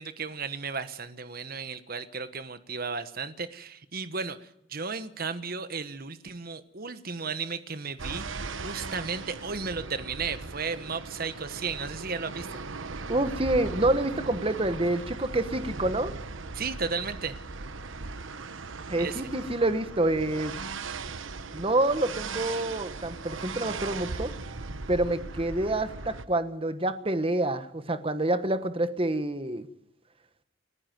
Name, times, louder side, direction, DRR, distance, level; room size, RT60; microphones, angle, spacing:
voice 1, 0.0-4.4 4.7-8.2 8.6-12.6 16.5-17.4 19.0-19.2, right 5 dB, 45° right, 11 dB, 1.3 m, -34 dB
sound 1, 8.0-26.2, right 4 dB, 75° right, 1.0 m, -38 dB
voice 2, 13.1-16.1 18.9-20.5 21.5-24.3 24.9-29.7, right 1 dB, 25° right, 10 dB, 1.2 m, -27 dB
29.5 x 9.9 x 9.6 m, 0.81 s
head